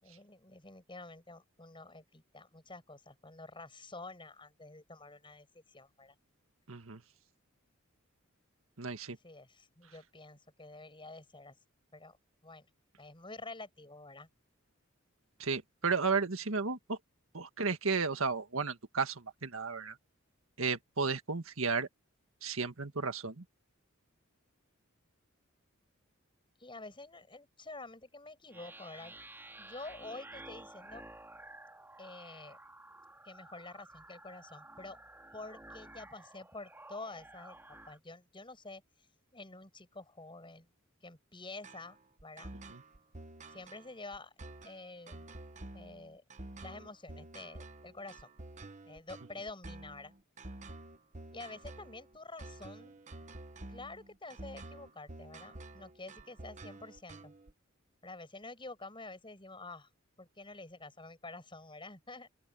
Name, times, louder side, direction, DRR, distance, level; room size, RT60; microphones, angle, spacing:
voice 1, 0.0-6.2 9.1-11.6 11.9-12.2 12.4-12.7 13.0-14.3 26.6-29.1 29.6-31.0 32.0-32.6 33.2-35.0 35.3-39.1 39.3-40.7 41.0-42.5 43.5-44.3 44.6-45.2 45.7-46.2 46.6-48.3 48.9-50.1 51.3-53.0 53.7-57.3 58.0-59.9 60.2-62.5, left 2 dB, 25° left, 7.7 m, -48 dB
voice 2, 6.7-7.0 8.8-9.2 15.4-17.0 17.3-20.0 20.6-21.9 22.4-23.4 42.7-42.8, right 4 dB, 85° right, 1.7 m, -33 dB
sound 1, 28.5-38.0, right 2 dB, 10° right, 4.3 m, -52 dB
sound 2, 41.6-57.5, right 2 dB, 35° right, 1.1 m, -49 dB
open air
head